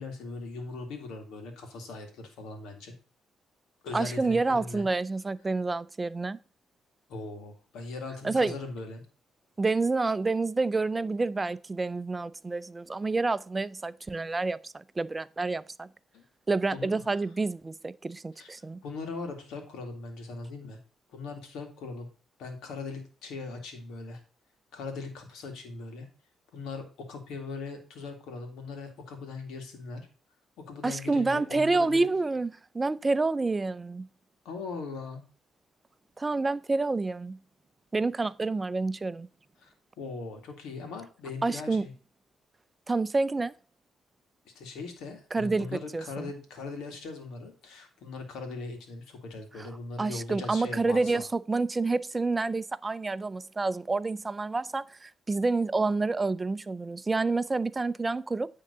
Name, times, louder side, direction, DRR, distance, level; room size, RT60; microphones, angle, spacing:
voice 1, 0.0-2.9 3.8-4.9 7.1-9.0 16.1-16.2 16.7-17.0 18.4-18.5 18.8-20.8 21.1-22.1 22.4-24.2 24.7-26.1 26.5-30.0 30.6-32.1 34.4-35.2 39.6-41.9 44.6-51.2, left 3 dB, 90° left, 2.2 m, -40 dB
voice 2, 3.9-6.4 8.2-8.5 9.6-15.9 16.5-18.8 30.8-34.1 36.2-37.4 37.9-39.3 41.4-41.8 42.9-43.5 45.3-46.3 50.0-58.5, right 3 dB, 25° right, 0.5 m, -28 dB
9.6 x 3.8 x 6.7 m
cardioid pair, 90°, 0 cm